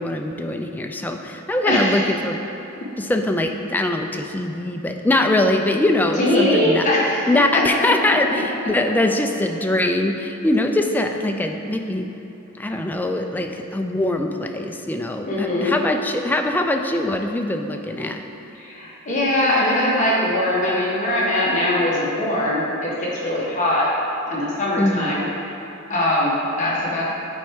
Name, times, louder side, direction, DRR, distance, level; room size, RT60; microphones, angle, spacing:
voice 1, 0.0-2.4 3.0-6.8 7.3-12.1 12.6-18.2 24.8-25.1, left 1 dB, 10° left, 4 dB, 0.3 m, -22 dB
voice 2, 1.6-2.1 6.2-7.9 15.3-15.8 18.5-23.9 24.3-25.6 25.9-27.0, left 1 dB, 35° left, -6 dB, 1.3 m, -21 dB
9.0 x 4.4 x 3.6 m, 2.9 s
head